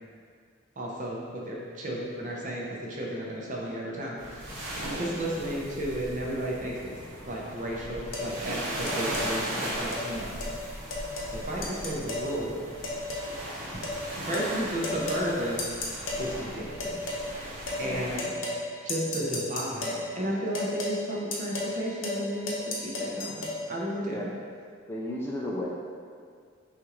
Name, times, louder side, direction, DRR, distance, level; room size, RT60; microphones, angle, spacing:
voice 1, 0.8-4.5 5.0-6.8 7.2-10.4 11.3-12.7 13.7-13.9 14.2-15.6 16.2-18.3 18.8-24.3, right 1 dB, 40° right, -3 dB, 0.6 m, -33 dB
sound 1, 4.2-18.2, right 1 dB, 65° right, 1.1 m, -37 dB
sound 2, 8.1-8.3 8.9-9.3 9.9-10.1 10.4-10.5 10.9-11.3 11.6-12.3 12.8-13.3 13.8-14.0 14.3-14.5 14.8-15.3 15.6-16.2 16.8-17.2 17.7-17.8 18.2-18.6 18.9-20.0 20.5-21.0 21.3-21.8 22.0-22.2 22.5-23.6, left 2 dB, 75° left, 0.7 m, -33 dB
voice 2, 24.0-24.3 24.9-25.7, left 1 dB, 10° left, -5 dB, 0.3 m, -34 dB
5.9 x 2.5 x 3.0 m, 2.1 s
head